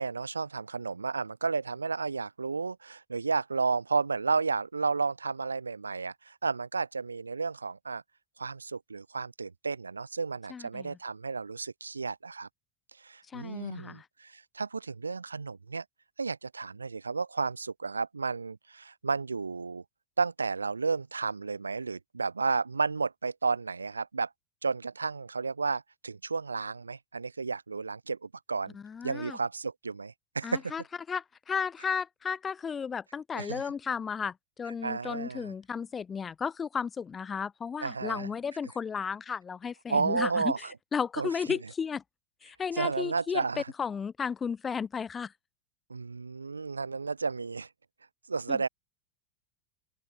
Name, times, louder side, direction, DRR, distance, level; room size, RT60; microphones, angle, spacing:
voice 1, 0.0-8.0 8.4-12.5 13.0-15.8 16.2-19.8 20.2-24.3 24.6-28.8 29.0-30.7 33.3-33.6 34.8-35.5 37.8-38.3 39.9-40.7 41.2-41.6 42.7-43.7 45.9-47.7 48.3-48.7, right 4 dB, 85° right, 1.2 m, -32 dB
voice 2, 10.5-11.0 13.3-14.0 28.7-29.4 30.4-30.8 31.1-42.0 42.4-43.4 43.8-45.3 48.5-48.6, left 6 dB, 25° left, 4.6 m, -34 dB
open air
figure-of-eight pair, 80°, 0 cm